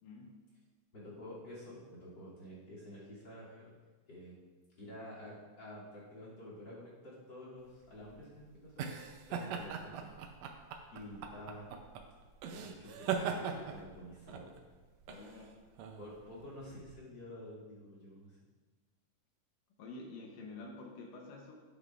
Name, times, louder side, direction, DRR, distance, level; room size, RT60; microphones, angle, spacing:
voice 1, 0.0-0.5 15.1-15.6 19.8-21.6, left 3 dB, 80° left, 0 dB, 2.5 m, -49 dB
voice 2, 0.9-3.7 4.1-4.3 4.8-10.1 10.9-11.6 12.5-14.5 16.0-18.4, left 1 dB, 35° left, -7 dB, 3.1 m, -50 dB
sound 1, 7.7-16.9, right 6 dB, 80° right, 1.5 m, -41 dB
12.5 x 8.1 x 2.5 m, 1.4 s
omnidirectional pair, 3.8 m